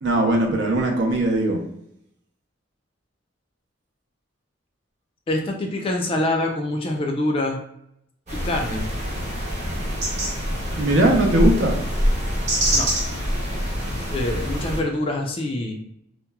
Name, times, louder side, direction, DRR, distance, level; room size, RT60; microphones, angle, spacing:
voice 1, 0.0-1.6 10.8-11.8, right 1 dB, 65° right, 0 dB, 0.6 m, -19 dB
voice 2, 5.3-7.6 8.4-8.8 12.7-12.9 14.1-15.8, left 1 dB, 30° left, 2 dB, 0.3 m, -25 dB
sound 1, 8.3-14.8, equal, 35° right, 0.8 m, -25 dB
2.8 x 2.1 x 2.2 m, 0.76 s
head